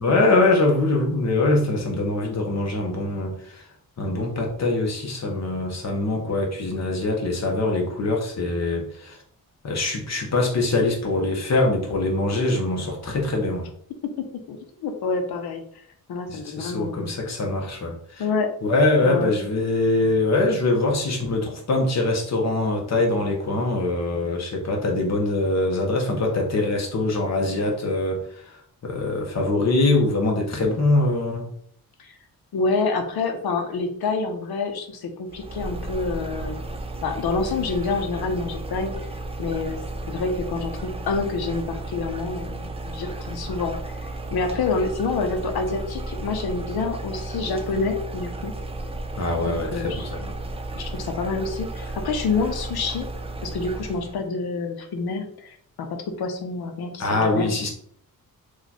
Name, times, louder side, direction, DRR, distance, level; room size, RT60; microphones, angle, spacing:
voice 1, 0.0-3.6 4.0-9.2 9.6-13.7 16.3-18.2 18.6-28.6 28.8-31.5 49.2-50.2 57.0-57.7, left 2 dB, 45° left, 1 dB, 1.0 m, -23 dB
voice 2, 14.2-15.6 16.1-17.1 18.2-18.5 19.0-19.4 32.0-32.1 32.5-36.6 37.0-38.9 39.4-39.8 40.1-43.7 44.0-48.5 49.5-50.3 50.8-53.1 53.4-57.5, left 4 dB, 85° left, 5 dB, 0.7 m, -27 dB
sound 1, 35.3-54.2, right 2 dB, 15° right, 0.4 m, -33 dB
3.1 x 2.4 x 4.0 m, 0.62 s
wide cardioid pair, 125°, 37 cm